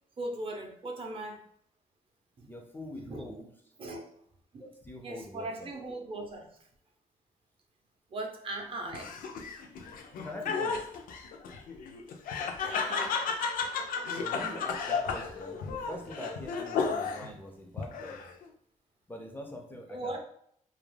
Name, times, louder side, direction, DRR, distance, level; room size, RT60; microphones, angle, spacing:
voice 1, 0.2-1.4 2.4-2.5 2.9-3.3 3.8-4.0 4.5-4.6 5.0-6.5 8.1-9.2 12.7-13.2 19.9-20.2, right 2 dB, 40° right, 2 dB, 0.5 m, -38 dB
voice 2, 2.5-3.5 4.6-5.7 10.2-10.9 14.1-18.2 19.1-20.2, left 1 dB, 15° left, 1 dB, 0.3 m, -43 dB
Laughter, 8.9-17.3 17.8-18.4, left 5 dB, 85° left, 0.4 m, -33 dB
2.3 x 2.0 x 3.1 m, 0.67 s
cardioid pair, 120°, 14 cm